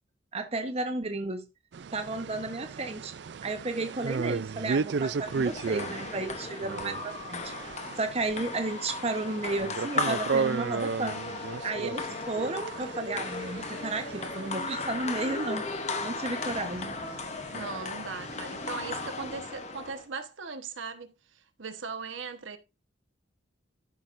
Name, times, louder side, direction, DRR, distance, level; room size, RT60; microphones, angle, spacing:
voice 1, 0.3-1.5 1.9-3.1 3.4-7.5 8.0-11.2 11.6-15.7 16.0-17.0, right 2 dB, 30° right, 0.9 m, -33 dB
sound 1, 1.7-19.1, right 5 dB, 60° right, 0.4 m, -35 dB
sound 2, 5.2-20.1, left 3 dB, 35° left, 0.8 m, -36 dB
voice 2, 17.5-22.6, right 4 dB, 80° right, 1.2 m, -39 dB
13.0 x 6.0 x 2.5 m
head